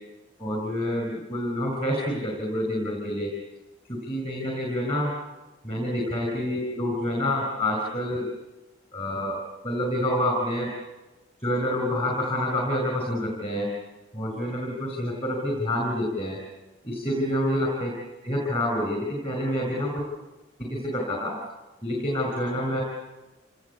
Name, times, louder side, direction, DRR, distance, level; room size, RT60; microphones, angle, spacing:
voice 1, 0.4-3.3 3.9-5.1 5.6-8.3 8.9-9.4 9.6-10.7 11.4-13.7 14.1-16.4 16.8-17.9 18.2-20.0 20.6-21.3 21.8-22.8, left 1 dB, 30° left, 0 dB, 5.4 m, -27 dB
27.5 x 19.5 x 8.4 m, 1.1 s
head